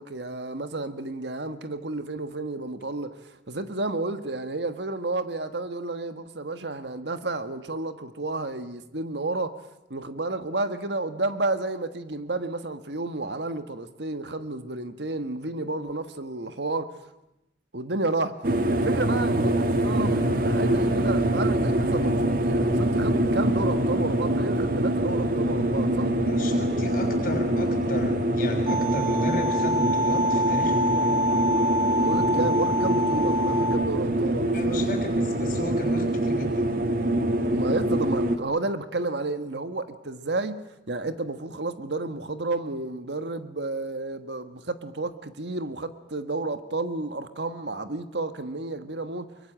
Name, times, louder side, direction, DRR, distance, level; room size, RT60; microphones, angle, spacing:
voice 1, 0.0-9.5 9.9-17.0 17.7-18.4 18.7-26.1 32.0-35.0 37.5-49.3, right 2 dB, 70° right, 1.5 m, -31 dB
sound 1, 18.4-38.4, right 1 dB, 50° right, 1.7 m, -24 dB
voice 2, 26.3-31.1 34.5-36.7, left 1 dB, 50° left, 6.3 m, -34 dB
sound 2, 28.7-33.8, equal, 35° right, 2.3 m, -26 dB
23.5 x 23.5 x 8.8 m
head